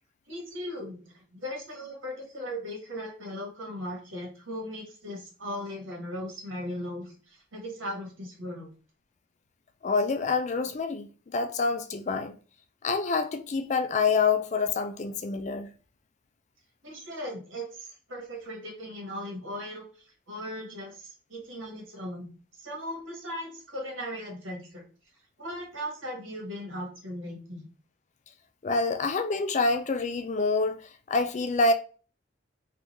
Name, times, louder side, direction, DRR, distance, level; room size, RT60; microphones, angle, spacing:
voice 1, 0.3-8.7 16.8-22.3 22.6-24.8 25.4-27.7, equal, 85° right, 1.4 m, -38 dB
voice 2, 9.8-12.4 12.8-15.7 28.6-30.8 31.1-31.7, left 4 dB, 35° left, 0.3 m, -27 dB
3.5 x 2.5 x 2.9 m
head